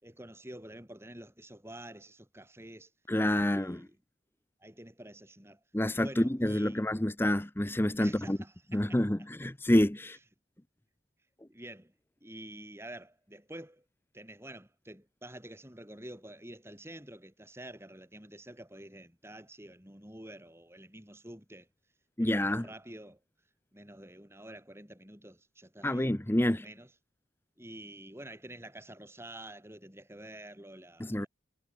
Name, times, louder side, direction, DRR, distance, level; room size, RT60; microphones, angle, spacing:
voice 1, 0.0-2.9 3.4-4.0 4.6-5.6 6.0-7.0 8.0-9.0 10.1-10.2 11.5-11.9 12.2-13.8 14.1-21.7 22.2-23.2 23.7-26.1 26.5-26.9 27.6-31.3, right 1 dB, 15° right, 6.9 m, -48 dB
voice 2, 3.1-3.8 5.7-8.4 8.7-10.2 22.2-22.6 25.8-26.6 31.0-31.3, left 1 dB, 10° left, 0.8 m, -28 dB
head